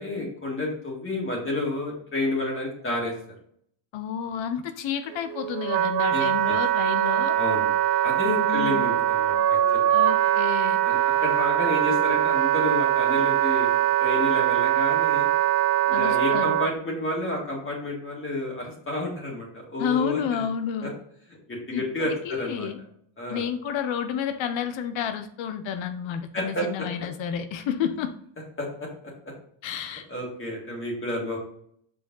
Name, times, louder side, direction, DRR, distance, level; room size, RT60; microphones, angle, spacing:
voice 1, 0.0-3.1 6.1-6.6 7.3-7.7 8.0-9.8 10.8-13.7 14.0-15.3 15.9-20.4 20.8-20.9 21.5-22.7 23.2-23.4 26.3-26.9 28.6-28.9 30.1-31.4, left 1 dB, 25° left, -2 dB, 2.0 m, -30 dB
voice 2, 3.9-7.4 8.5-8.8 9.9-10.8 15.9-16.6 19.8-20.9 21.7-21.9 22.2-22.8 23.3-28.1 29.6-30.0, left 8 dB, 80° left, 9 dB, 0.8 m, -30 dB
Wind instrument woodwind instrument, 5.1-16.7, right 11 dB, 60° right, 0.5 m, -22 dB
7.1 x 5.0 x 3.8 m, 0.66 s
cardioid pair, 165°, 45 cm